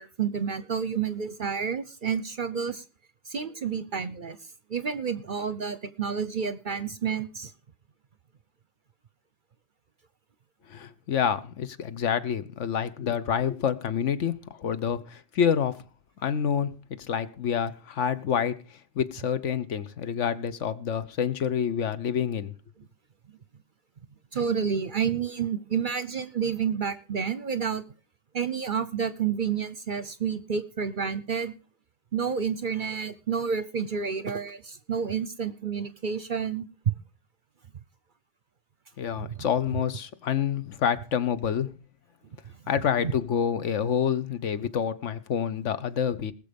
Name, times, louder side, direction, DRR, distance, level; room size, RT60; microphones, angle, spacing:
voice 1, 0.0-2.8 3.3-4.4 4.7-7.5 24.3-27.8 28.3-31.5 32.1-36.7 39.4-39.5, right 6 dB, 45° right, 0.7 m, -30 dB
voice 2, 10.7-14.3 14.6-15.8 16.2-18.6 19.0-22.5 39.0-41.7 42.7-46.3, left 8 dB, 70° left, 1.2 m, -27 dB
19.5 x 6.9 x 5.2 m
omnidirectional pair, 1.3 m